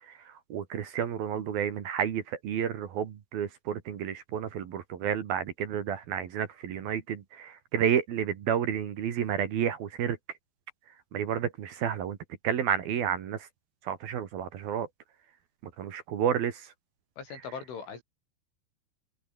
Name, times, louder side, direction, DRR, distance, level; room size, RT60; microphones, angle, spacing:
voice 1, 0.5-10.2 11.1-12.2 12.4-13.4 13.9-14.9 15.8-16.6, right 9 dB, 60° right, 3.4 m, -30 dB
voice 2, 17.2-18.0, left 6 dB, 85° left, 8.5 m, -40 dB
omnidirectional pair, 5.4 m